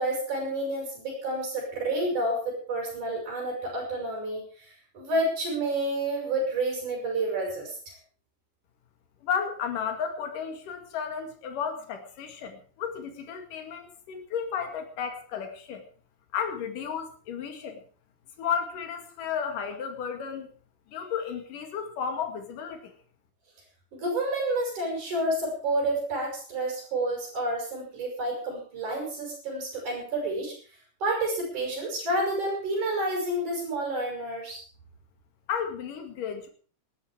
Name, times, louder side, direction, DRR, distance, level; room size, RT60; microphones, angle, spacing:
voice 1, 0.0-7.9 23.9-30.5 31.0-34.6, right 1 dB, 65° right, -1 dB, 7.8 m, -29 dB
voice 2, 9.2-15.8 16.3-17.8 18.4-20.5 20.9-22.9 35.5-36.5, left 7 dB, 75° left, 6 dB, 3.7 m, -33 dB
19.5 x 11.5 x 4.9 m, 0.41 s
omnidirectional pair, 3.8 m